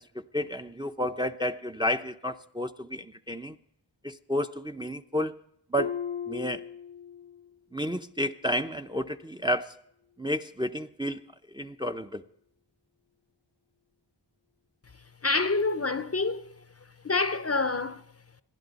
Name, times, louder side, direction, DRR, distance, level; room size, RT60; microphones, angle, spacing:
voice 1, 0.0-3.6 4.0-5.4 5.7-6.0 6.3-6.6 7.7-9.7 10.2-11.3 11.5-12.2, equal, 10° right, 0.5 m, -31 dB
Harp, 5.8-7.5 7.9-8.3 8.9-9.0, left 8 dB, 70° left, 0.7 m, -37 dB
voice 2, 15.2-16.4 17.0-18.0, left 3 dB, 35° left, 0.6 m, -27 dB
27.5 x 11.0 x 4.0 m
wide cardioid pair, 50°, 44 cm